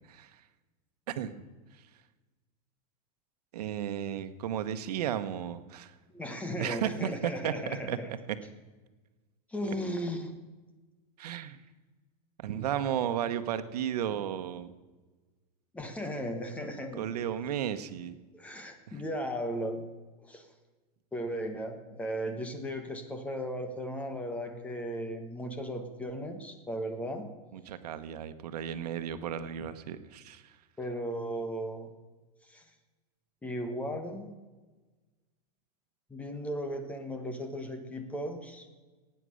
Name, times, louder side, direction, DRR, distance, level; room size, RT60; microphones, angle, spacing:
voice 1, 3.5-5.9 6.6-8.2 11.2-11.6 12.4-14.7 17.0-18.2 18.9-19.0 27.5-30.6, right 9 dB, 90° right, 10 dB, 1.1 m, -34 dB
voice 2, 6.1-8.1 9.5-10.3 15.7-17.1 18.3-19.8 20.2-20.5 21.1-27.3 30.8-31.9 32.5-32.6 33.4-34.3 36.1-38.7, equal, 5° left, 6 dB, 1.1 m, -36 dB
16.5 x 9.2 x 6.4 m, 1.3 s
supercardioid pair, 170°, 20 cm